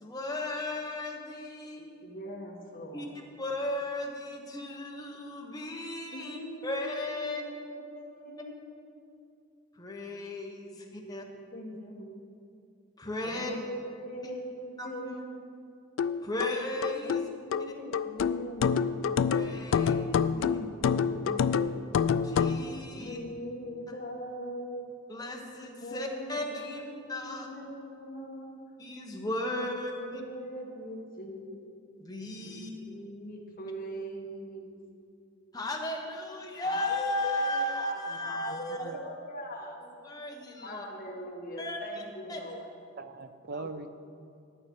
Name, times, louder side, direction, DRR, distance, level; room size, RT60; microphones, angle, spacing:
voice 1, 0.0-2.0 2.9-3.1 3.4-7.4 9.8-11.2 13.0-13.5 14.8-15.2 16.2-17.2 19.3-19.9 22.2-23.2 25.1-26.8 27.1-27.5 28.8-30.2 32.0-32.7 35.5-38.9 39.8-40.8 41.6-41.8 42.3-42.4 43.5-43.7, left 1 dB, 20° left, 0 dB, 1.1 m, -35 dB
voice 2, 2.0-3.2 6.1-6.8 7.1-8.9 10.6-12.2 13.2-15.5 17.0-22.0 22.9-24.9 25.8-28.6 29.5-31.6 32.4-34.8 36.6-39.8 40.6-42.7, equal, 45° left, -3 dB, 1.4 m, -42 dB
sound 1, 16.0-22.6, left 6 dB, 65° left, 0.3 m, -27 dB
voice 3, 38.5-39.0 43.0-43.9, right 3 dB, 45° right, 10 dB, 0.5 m, -41 dB
11.0 x 9.5 x 4.6 m, 2.4 s
head